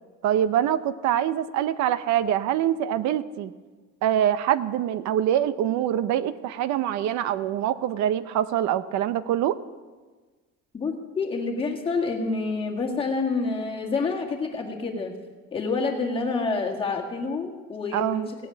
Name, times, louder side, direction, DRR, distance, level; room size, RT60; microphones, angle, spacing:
voice 1, 0.2-3.5 4.0-9.6 17.9-18.3, right 11 dB, 75° right, 13 dB, 0.7 m, -24 dB
voice 2, 10.7-15.1 15.5-18.4, left 4 dB, 20° left, 0 dB, 1.8 m, -28 dB
17.0 x 8.5 x 9.1 m, 1.3 s
cardioid pair, 180°, 29 cm